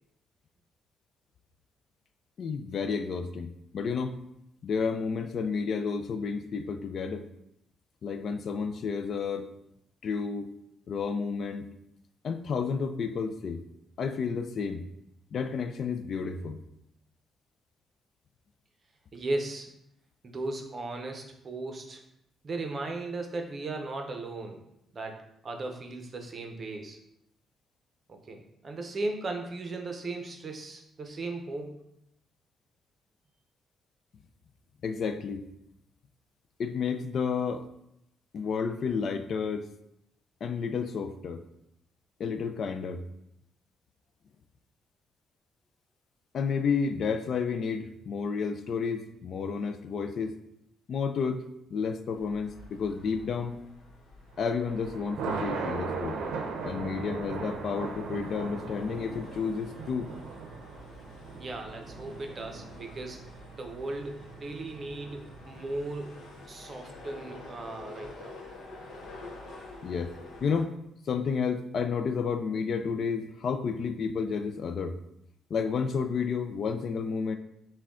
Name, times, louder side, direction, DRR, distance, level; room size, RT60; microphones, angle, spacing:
voice 1, 2.4-4.2 4.6-7.3 8.0-9.5 10.0-10.5 10.9-11.7 12.2-13.6 14.0-14.9 15.3-16.6 34.8-35.5 36.6-37.7 38.3-39.7 40.4-41.4 42.2-43.0 46.3-50.3 50.9-53.6 54.4-56.2 56.6-60.1 69.8-70.1 70.4-70.8 71.0-75.0 75.5-77.4, left 5 dB, 55° left, 8 dB, 0.3 m, -31 dB
voice 2, 19.1-19.7 20.2-22.0 22.4-24.6 24.9-27.0 28.1-31.8 61.3-63.3 63.5-68.3, right 2 dB, 35° right, 4 dB, 0.6 m, -37 dB
sound 1, 52.1-70.6, left 2 dB, 75° left, 1.0 m, -49 dB
Thunder, 54.3-65.7, right 4 dB, 90° right, 0.6 m, -39 dB
5.9 x 2.2 x 3.6 m, 0.80 s
cardioid pair, 130°, 0 cm